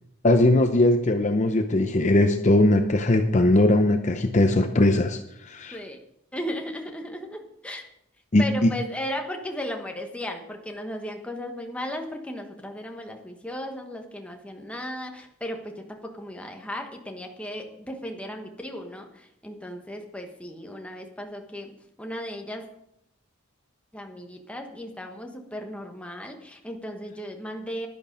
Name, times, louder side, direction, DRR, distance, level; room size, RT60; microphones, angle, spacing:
voice 1, 0.2-5.8 8.3-8.7, left 1 dB, 35° left, 6 dB, 0.6 m, -20 dB
voice 2, 6.3-7.9 8.4-21.7 22.0-22.7 23.9-27.9, equal, 5° left, 3 dB, 1.2 m, -36 dB
11.0 x 10.5 x 5.2 m, 0.78 s
head